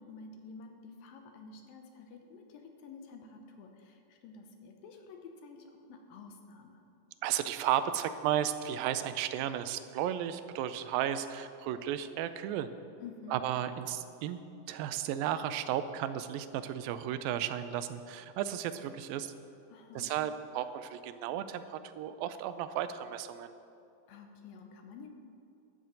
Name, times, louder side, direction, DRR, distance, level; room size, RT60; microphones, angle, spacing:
voice 1, 0.0-6.8 13.0-13.4 19.7-20.1 24.1-25.1, left 4 dB, 80° left, 4 dB, 2.8 m, -50 dB
voice 2, 7.2-12.7 13.3-14.4 14.7-19.3 20.0-23.5, right 10 dB, 85° right, 11 dB, 2.4 m, -34 dB
12.0 x 6.7 x 7.5 m, 2.6 s
omnidirectional pair, 4.0 m